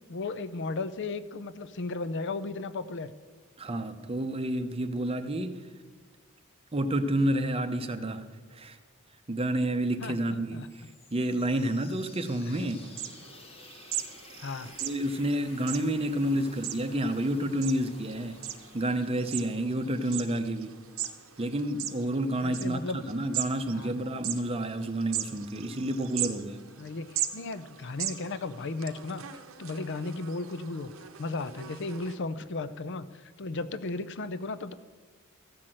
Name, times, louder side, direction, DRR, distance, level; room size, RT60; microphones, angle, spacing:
voice 1, 0.1-3.1 10.0-10.1 10.5-10.7 14.4-14.7 19.8-19.9 22.4-23.0 23.7-24.0 26.8-30.9 31.2-34.7, left 3 dB, 55° left, 0.6 m, -35 dB
voice 2, 3.6-5.6 6.7-8.3 8.5-8.8 9.3-10.8 11.1-12.9 14.8-18.4 18.7-20.7 21.4-26.7, right 1 dB, 25° right, 0.7 m, -29 dB
sound 1, 10.4-22.1, left 3 dB, 30° left, 1.0 m, -54 dB
sound 2, 12.6-32.2, right 11 dB, 70° right, 0.8 m, -39 dB
14.0 x 5.9 x 7.7 m
head